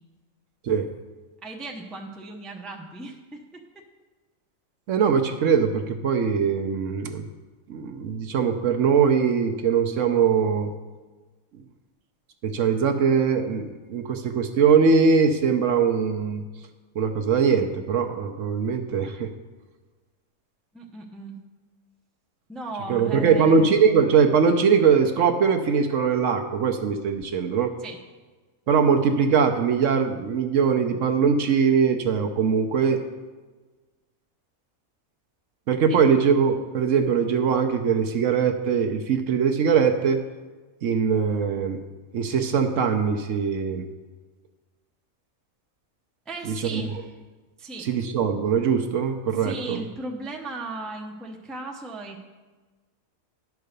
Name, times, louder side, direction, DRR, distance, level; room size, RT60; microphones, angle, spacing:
voice 1, 1.4-3.6 20.7-21.4 22.5-23.7 27.8-28.0 35.9-36.0 46.3-47.1 47.6-47.9 49.3-52.2, right 2 dB, ahead, 0 dB, 0.6 m, -36 dB
voice 2, 4.9-7.2 7.7-10.7 12.4-16.4 16.9-19.3 22.9-27.8 28.7-33.0 35.7-40.2 40.8-41.8 42.1-43.9 46.4-46.8 47.8-49.8, right 6 dB, 65° right, 5 dB, 1.1 m, -21 dB
11.0 x 4.7 x 6.6 m, 1.3 s
omnidirectional pair, 1.5 m